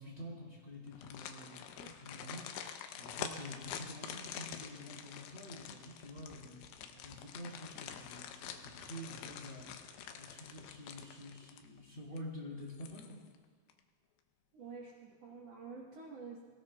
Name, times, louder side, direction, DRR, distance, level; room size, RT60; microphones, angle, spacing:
voice 1, 0.0-9.7 10.1-13.2, left 1 dB, 15° left, -5 dB, 2.8 m, -48 dB
sound 1, 0.9-11.8 12.2-12.3 12.7-13.4 13.7-13.8, left 8 dB, 80° left, 2.8 m, -47 dB
voice 2, 14.5-16.4, right 4 dB, 80° right, -3 dB, 1.4 m, -49 dB
25.5 x 17.0 x 2.3 m, 1.5 s
omnidirectional pair, 5.0 m